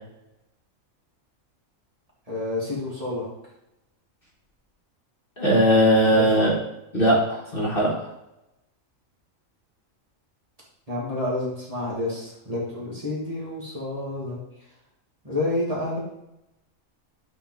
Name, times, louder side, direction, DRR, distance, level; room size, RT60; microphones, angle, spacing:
voice 1, 2.3-3.3 6.1-6.5 10.9-14.4 15.2-16.0, left 2 dB, 25° right, -6 dB, 1.6 m, -29 dB
voice 2, 5.4-6.5 6.9-7.9, equal, 40° left, -4 dB, 1.4 m, -19 dB
8.3 x 3.0 x 3.7 m, 0.87 s
omnidirectional pair, 1.4 m